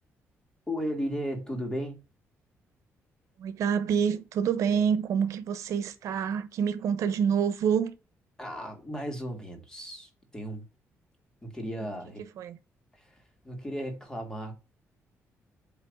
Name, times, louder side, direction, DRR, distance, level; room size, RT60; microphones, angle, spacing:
voice 1, 0.7-2.0 8.4-10.6 11.4-12.2 12.9-14.6, equal, 10° left, 1.8 m, -35 dB
voice 2, 3.4-7.9 12.4-12.6, right 7 dB, 80° right, 1.0 m, -27 dB
8.3 x 3.1 x 5.2 m
cardioid pair, 165°, 5 cm